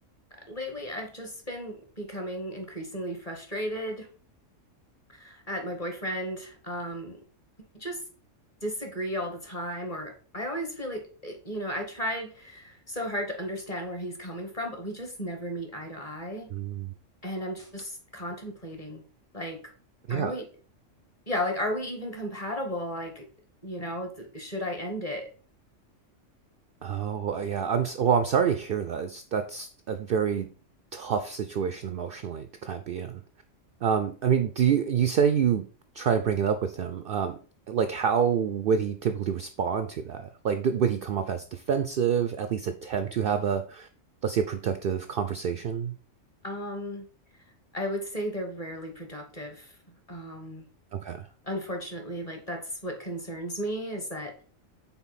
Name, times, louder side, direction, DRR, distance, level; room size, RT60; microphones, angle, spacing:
voice 1, 0.5-4.1 5.1-7.2 7.7-8.0 8.6-16.5 17.2-19.0 19.3-19.7 20.1-20.4 21.3-23.2 23.6-25.3 46.4-47.1 47.7-49.7 50.1-50.6 51.4-54.3, equal, 30° left, 3 dB, 1.3 m, -34 dB
voice 2, 16.5-16.9 20.1-20.4 26.8-30.5 30.9-33.2 33.8-35.7 35.9-37.4 37.7-43.9 44.2-45.9 50.9-51.3, right 7 dB, 60° right, 9 dB, 0.6 m, -27 dB
5.9 x 4.1 x 4.1 m, 0.40 s
omnidirectional pair, 1.3 m